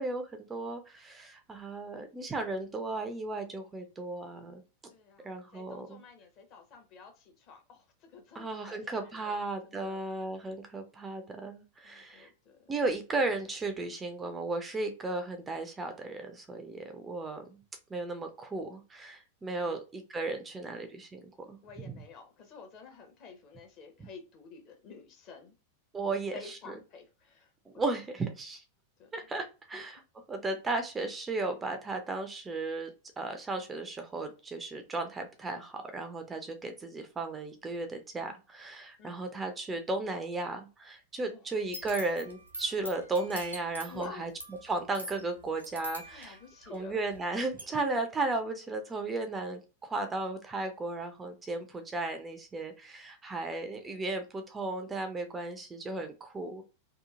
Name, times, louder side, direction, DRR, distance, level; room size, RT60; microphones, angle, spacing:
voice 1, 0.0-4.6 5.2-6.0 8.4-12.3 12.7-17.6 17.9-21.2 21.5-21.6 25.9-26.7 27.7-28.6 29.1-30.0 30.3-32.9 33.2-44.3 44.6-46.4 46.7-56.6, right 2 dB, 15° right, 0.4 m, -35 dB
voice 2, 4.9-10.0 11.8-12.7 19.6-19.8 21.6-25.5 26.0-27.5 29.0-29.3 29.7-29.8 39.0-39.3 41.2-41.4 43.9-44.3 46.0-47.0, left 5 dB, 40° left, 0.8 m, -50 dB
sound 1, 41.6-47.2 47.6-47.7, equal, 85° right, 0.8 m, -44 dB
2.8 x 2.3 x 2.4 m
figure-of-eight pair, 90°, 0 cm